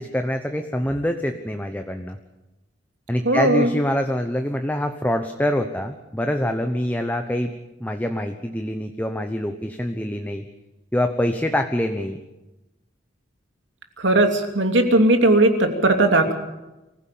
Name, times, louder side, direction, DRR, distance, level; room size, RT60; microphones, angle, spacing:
voice 1, 0.0-2.2 3.1-7.5 7.8-10.4 10.9-12.2, equal, 10° left, 6 dB, 1.0 m, -25 dB
voice 2, 3.2-3.7 14.0-16.3, right 2 dB, 75° right, 5 dB, 2.9 m, -18 dB
24.5 x 16.0 x 8.5 m, 1.0 s
head